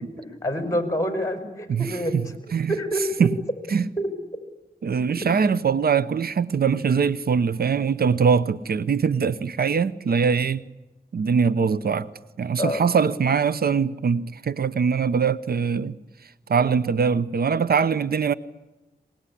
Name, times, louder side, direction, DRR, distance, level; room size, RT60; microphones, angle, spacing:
voice 1, 0.4-2.2 2.7-3.3 4.0-4.1 12.6-12.8, equal, 20° left, 5.4 m, -26 dB
voice 2, 1.7-2.3 2.5-2.7 3.2-3.3 3.7-3.9 4.8-10.6 11.1-12.1 12.4-15.9 16.5-18.3, right 6 dB, 70° right, 0.8 m, -22 dB
24.0 x 21.5 x 9.9 m
wide cardioid pair, 75°, 16 cm